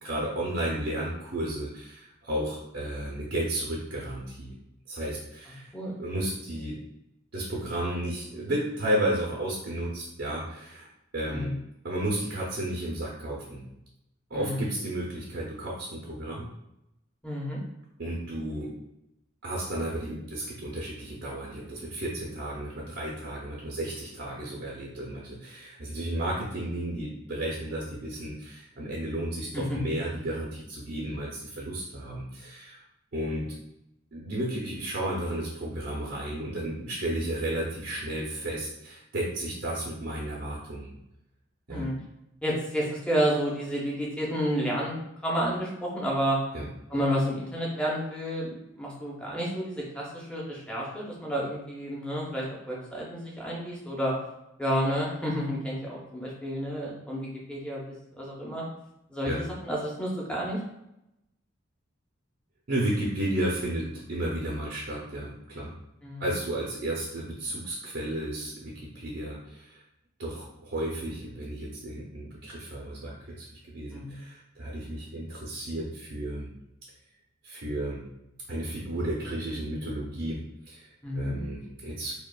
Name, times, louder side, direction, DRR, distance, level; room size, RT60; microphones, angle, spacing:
voice 1, 0.0-4.5 4.9-5.7 6.0-6.8 7.3-10.9 11.1-11.5 11.8-13.6 14.3-16.5 18.0-18.7 19.4-32.8 33.1-33.5 34.1-40.9 41.7-41.9 46.5-46.7 59.2-59.4 62.7-65.7 66.2-69.8 70.2-76.5 77.4-78.0 78.5-80.9 81.1-82.2, right 1 dB, 60° right, -4 dB, 0.6 m, -33 dB
voice 2, 14.3-14.7 17.2-17.6 29.5-29.8 41.7-41.9 42.4-44.9 45.2-46.4 46.9-48.5 48.8-54.1 54.6-57.8 58.2-58.6 59.1-59.3 59.7-60.6 66.0-66.2 73.9-74.1 81.0-81.4, equal, 5° left, -4 dB, 0.8 m, -30 dB
4.9 x 2.4 x 2.3 m, 0.85 s
head